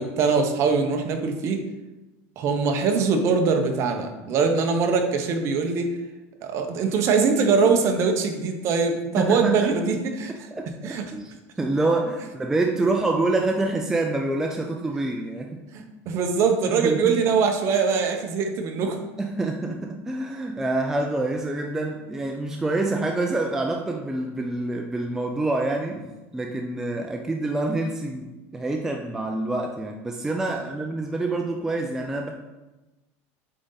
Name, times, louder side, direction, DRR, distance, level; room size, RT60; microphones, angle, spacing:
voice 1, 0.0-1.6 2.4-5.9 6.4-10.3 10.8-11.1 15.7-19.0 30.5-30.7, right 5 dB, 40° right, 5 dB, 0.8 m, -22 dB
voice 2, 9.1-9.7 10.3-11.3 11.6-15.6 16.6-17.2 19.2-32.3, right 2 dB, 5° right, 2 dB, 0.3 m, -27 dB
7.7 x 3.9 x 3.9 m, 1.1 s
supercardioid pair, 155°, 7 cm